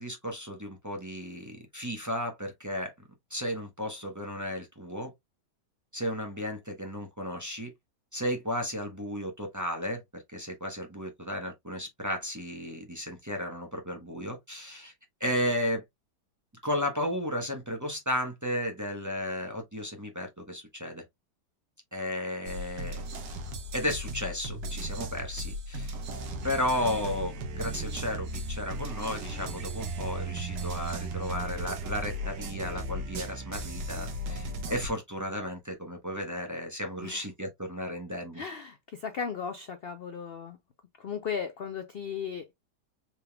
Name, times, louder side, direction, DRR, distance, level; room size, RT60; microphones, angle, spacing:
voice 1, 0.0-2.9 3.3-5.1 5.9-7.7 8.1-14.9 15.2-15.8 16.6-21.0 21.9-23.0 23.7-25.9 26.4-38.4, left 1 dB, 15° right, 0.6 m, -34 dB
sound 1, 22.5-34.9, right 1 dB, 85° right, 1.6 m, -36 dB
voice 2, 38.3-40.6 41.0-42.5, left 6 dB, 85° left, 0.5 m, -36 dB
5.2 x 3.4 x 2.2 m
omnidirectional pair, 1.8 m